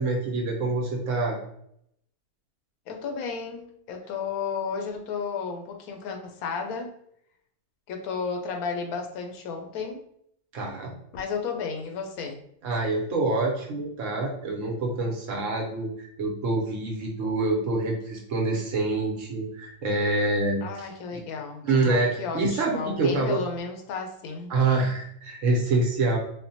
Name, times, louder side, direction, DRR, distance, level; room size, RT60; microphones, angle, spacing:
voice 1, 0.0-1.4 10.5-10.9 12.6-21.2 21.6-23.4 24.5-26.2, right 2 dB, 65° right, -1 dB, 1.0 m, -26 dB
voice 2, 2.9-6.9 7.9-10.0 11.1-12.4 20.6-24.5, left 5 dB, 80° left, 4 dB, 1.0 m, -33 dB
4.3 x 2.1 x 2.7 m, 0.70 s
omnidirectional pair, 1.6 m